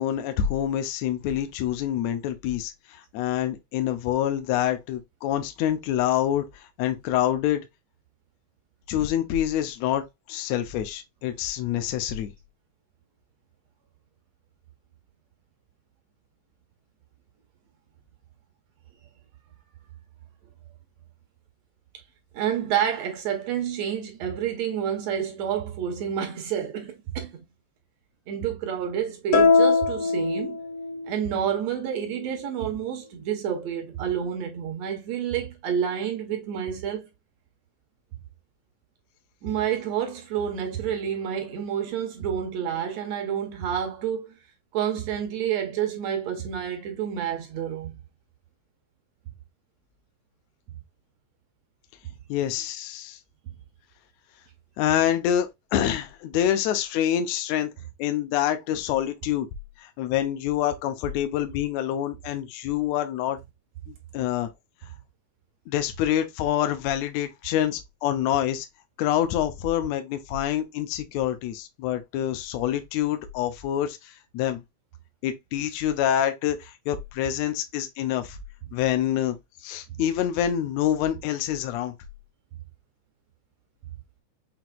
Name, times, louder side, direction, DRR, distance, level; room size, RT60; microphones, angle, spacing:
voice 1, 0.0-7.7 8.9-12.3 52.3-53.2 54.8-57.7 58.0-59.5 59.8-63.4 63.9-64.5 65.7-68.7 69.0-74.6 75.2-78.4 78.7-79.4 79.6-81.9, left 11 dB, 80° left, 1.7 m, -26 dB
voice 2, 22.3-27.4 28.3-30.6 31.1-37.1 39.4-44.4 44.7-48.0 52.0-52.1, right 9 dB, 70° right, 1.7 m, -29 dB
sound 1, 29.3-31.1, left 4 dB, 60° left, 1.6 m, -21 dB
5.9 x 2.8 x 2.2 m
omnidirectional pair, 3.5 m